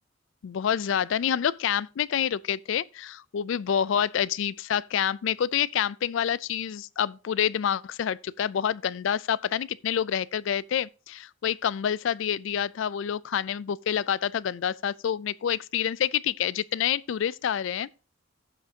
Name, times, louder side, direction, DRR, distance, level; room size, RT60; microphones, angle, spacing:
voice 1, 0.4-18.1, left 9 dB, 65° left, 0.3 m, -27 dB
17.0 x 5.8 x 2.7 m
head